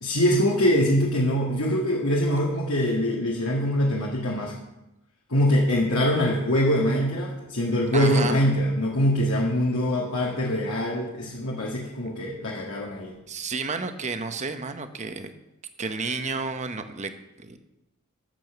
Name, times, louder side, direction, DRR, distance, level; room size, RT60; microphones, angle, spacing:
voice 1, 0.0-4.5 5.3-13.1, equal, 75° left, -3 dB, 1.8 m, -23 dB
voice 2, 7.9-8.4 13.3-15.3 15.8-17.6, right 4 dB, 35° right, 8 dB, 0.9 m, -31 dB
12.5 x 7.0 x 6.9 m, 0.93 s
head